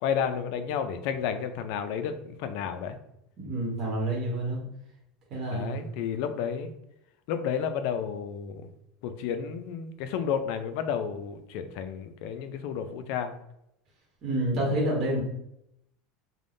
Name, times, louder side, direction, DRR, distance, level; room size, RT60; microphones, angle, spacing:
voice 1, 0.0-3.0 5.5-6.7 7.3-8.7 9.0-13.3, left 7 dB, 65° left, 9 dB, 0.3 m, -31 dB
voice 2, 3.4-4.6 5.3-5.7 14.2-15.2, right 1 dB, 40° right, -3 dB, 0.9 m, -28 dB
3.3 x 2.1 x 2.5 m, 0.79 s
supercardioid pair, 140°, 0 cm